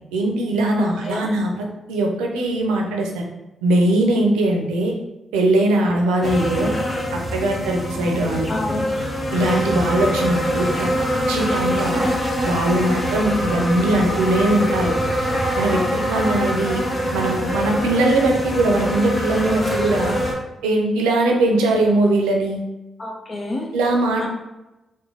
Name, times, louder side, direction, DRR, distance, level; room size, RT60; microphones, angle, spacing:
voice 1, 0.1-3.2 3.6-4.9 5.3-6.7 7.1-8.5 9.3-10.9 11.3-12.1 12.4-14.9 15.6-16.8 17.1-20.2 20.6-22.6 23.7-24.3, right 2 dB, 85° right, 1 dB, 0.5 m, -20 dB
voice 2, 0.8-1.3 8.5-8.9 23.0-23.7 24.2-24.3, left 2 dB, 50° left, 0 dB, 0.8 m, -28 dB
sound 1, 6.2-20.3, equal, 25° left, 1.0 m, -24 dB
3.0 x 2.2 x 3.7 m, 0.99 s
hypercardioid pair, 40°, 0 cm